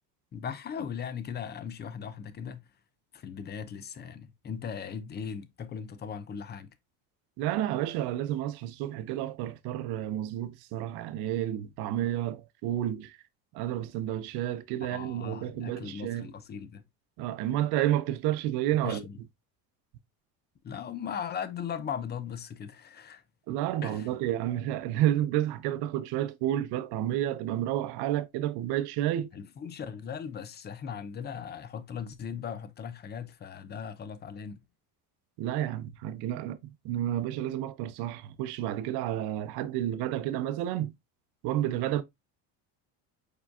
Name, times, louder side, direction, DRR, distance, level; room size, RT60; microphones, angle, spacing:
voice 1, 0.3-2.7 3.1-6.7 14.9-16.8 18.8-19.2 20.6-23.2 23.8-24.1 29.3-34.6, left 7 dB, 25° left, 0.5 m, -38 dB
voice 2, 7.4-13.2 13.5-16.3 17.2-19.0 23.5-29.3 35.4-36.6 36.8-40.9 41.4-42.0, right 12 dB, 70° right, 0.7 m, -30 dB
4.7 x 4.7 x 2.4 m
cardioid pair, 130°, 41 cm